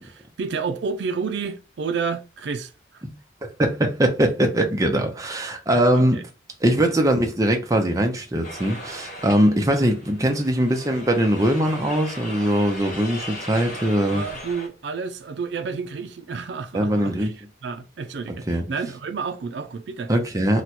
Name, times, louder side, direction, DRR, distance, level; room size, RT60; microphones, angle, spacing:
voice 1, 0.0-3.0 5.7-6.2 9.7-9.9 14.1-17.3 17.6-20.1, right 5 dB, 70° right, 0.4 m, -30 dB
voice 2, 3.6-6.2 6.6-14.2 16.7-17.3 18.5-18.6 20.1-20.6, right 1 dB, 20° right, 0.5 m, -21 dB
sound 1, 8.4-14.7, equal, 45° left, 1.0 m, -37 dB
3.0 x 2.2 x 4.0 m
head